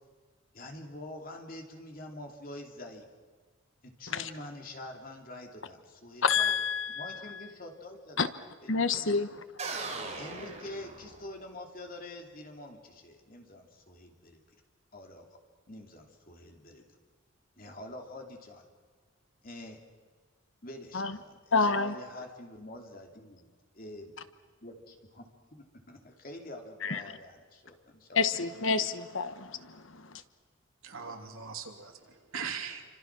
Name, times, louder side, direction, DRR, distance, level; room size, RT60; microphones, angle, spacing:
voice 1, 0.5-3.1 3.8-6.5 6.9-8.3 8.6-9.2 10.2-14.4 14.9-15.4 15.7-16.9 17.6-18.7 19.4-19.8 20.6-23.4 23.8-24.1 24.6-28.5, left 1 dB, 40° left, 2 dB, 3.1 m, -46 dB
voice 2, 6.2-7.4 8.2-8.3 8.7-9.3 9.7-10.2 20.9-21.2 21.5-21.9 26.8-27.0 28.2-30.2, left 4 dB, 65° left, 11 dB, 1.2 m, -29 dB
sound 1, 9.6-11.5, right 3 dB, 30° right, 3.6 m, -39 dB
voice 3, 30.8-32.8, right 6 dB, 75° right, 3 dB, 3.0 m, -40 dB
28.5 x 26.0 x 6.2 m, 1.5 s
head